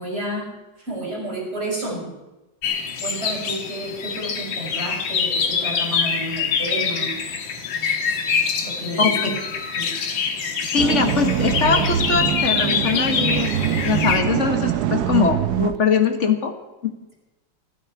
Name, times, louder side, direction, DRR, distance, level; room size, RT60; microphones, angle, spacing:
voice 1, 0.0-2.1 3.0-7.1 8.6-9.3 9.8-9.9, right 1 dB, 35° right, -3 dB, 6.9 m, -31 dB
sound 1, 2.6-14.2, left 6 dB, 75° left, 2.1 m, -25 dB
voice 2, 9.0-9.4 10.7-16.5 16.8-16.9, left 6 dB, 40° left, 6 dB, 1.7 m, -22 dB
sound 2, 10.8-15.8, right 10 dB, 65° right, 1.1 m, -23 dB
26.5 x 9.0 x 4.7 m, 1.1 s
omnidirectional pair, 2.1 m